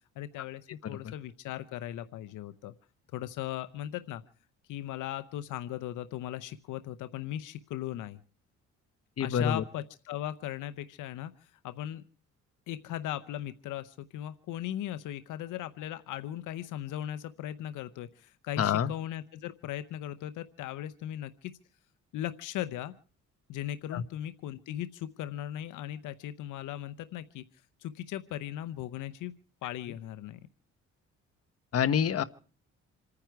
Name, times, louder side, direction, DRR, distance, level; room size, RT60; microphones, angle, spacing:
voice 1, 0.2-2.7 3.1-4.2 4.7-8.2 9.2-12.0 12.7-21.5 22.1-22.9 23.5-27.4 27.8-29.3 29.6-30.4, left 12 dB, 85° left, 13 dB, 0.8 m, -38 dB
voice 2, 9.2-9.6 18.6-18.9 23.9-24.0 31.7-32.2, left 8 dB, 50° left, 12 dB, 1.1 m, -26 dB
27.5 x 9.8 x 4.7 m, 0.41 s
cardioid pair, 90°, 30 cm